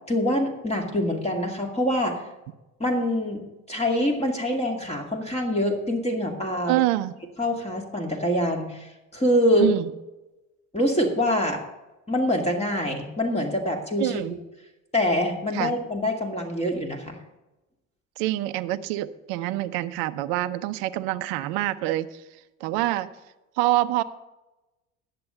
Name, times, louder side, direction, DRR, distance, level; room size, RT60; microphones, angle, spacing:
voice 1, 0.1-2.2 2.8-6.8 7.4-9.7 10.7-11.6 12.1-14.1 14.9-17.2, left 1 dB, 15° left, 1 dB, 2.3 m, -25 dB
voice 2, 6.7-7.1 9.6-9.9 14.0-14.3 15.5-15.7 18.2-22.2 22.6-23.1 23.6-24.0, right 16 dB, 65° right, 12 dB, 0.8 m, -26 dB
10.5 x 7.7 x 6.9 m, 1.0 s
hypercardioid pair, 70°, 39 cm